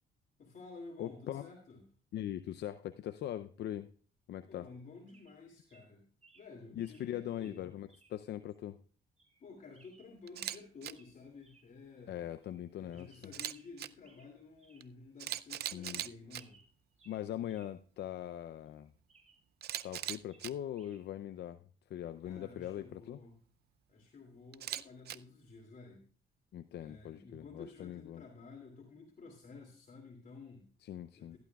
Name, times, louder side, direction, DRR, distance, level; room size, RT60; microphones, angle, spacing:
voice 1, 0.4-1.9 4.5-6.1 6.3-7.6 9.4-12.3 12.8-16.6 22.2-23.4 23.9-26.0 26.7-30.7 31.1-31.4, left 4 dB, 50° left, 0 dB, 2.6 m, -52 dB
voice 2, 1.0-1.5 2.1-3.9 4.3-4.7 6.8-8.8 12.1-13.3 15.7-16.0 17.1-18.9 19.8-21.6 21.9-23.2 26.5-28.2 30.8-31.4, left 11 dB, 70° left, 10 dB, 0.6 m, -41 dB
sound 1, 4.6-4.8 5.1-5.4 5.7-5.8 6.2-6.5 6.8-7.1 7.4-7.6 7.9-8.1 8.5-8.6 9.2-9.4 9.7-10.7 10.9-11.1 11.4-11.7 12.0-12.1 12.4-12.6 12.9-13.7 14.0-14.3 14.6-14.8 15.2-15.3 15.7-16.1 16.3-17.7 18.0-18.1 18.7-20.0 20.3-21.0 22.2-22.4, right 4 dB, 40° right, 5.8 m, -66 dB
Camera, 10.3-10.6 10.8-10.9 13.2-13.9 14.8-14.9 15.2-16.4 19.6-20.5 24.5-25.2, right 12 dB, 65° right, 0.5 m, -39 dB
16.0 x 11.5 x 2.3 m, 0.43 s
cardioid pair, 90°, 18 cm